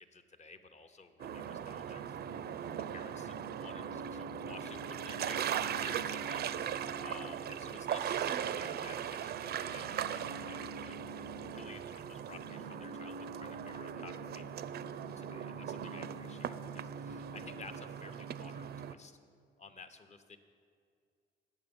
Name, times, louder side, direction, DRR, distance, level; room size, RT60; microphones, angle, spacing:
voice 1, 0.0-19.2 19.6-20.4, left 4 dB, 35° left, 7 dB, 0.7 m, -54 dB
sound 1, 1.2-18.9, right 8 dB, 55° right, 0.4 m, -39 dB
9.0 x 6.0 x 7.0 m, 2.3 s
cardioid pair, 90°, 20 cm